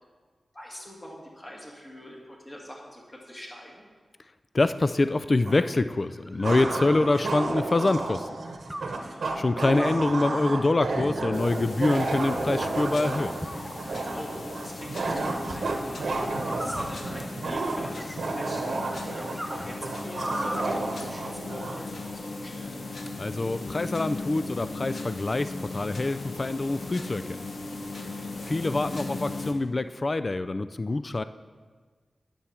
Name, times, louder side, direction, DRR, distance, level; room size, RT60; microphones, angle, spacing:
voice 1, 0.5-3.8 8.8-9.3 14.1-22.8 28.0-28.3, equal, 25° left, -2 dB, 2.2 m, -44 dB
voice 2, 4.5-8.3 9.4-13.4 23.2-27.4 28.5-31.2, left 2 dB, 45° left, 13 dB, 0.3 m, -25 dB
sound 1, 5.5-5.6 6.4-21.8, right 3 dB, 80° right, 1.0 m, -31 dB
sound 2, 5.9-7.7 8.7-9.0 9.7-10.2 11.0-11.5 12.1-12.7 13.4-14.2 15.3-15.6 16.4-18.5 18.9-20.8, equal, 5° right, 0.6 m, -39 dB
sound 3, 11.3-29.5, left 3 dB, 70° left, 0.9 m, -38 dB
9.7 x 6.9 x 4.4 m, 1.5 s
cardioid pair, 50°, 0 cm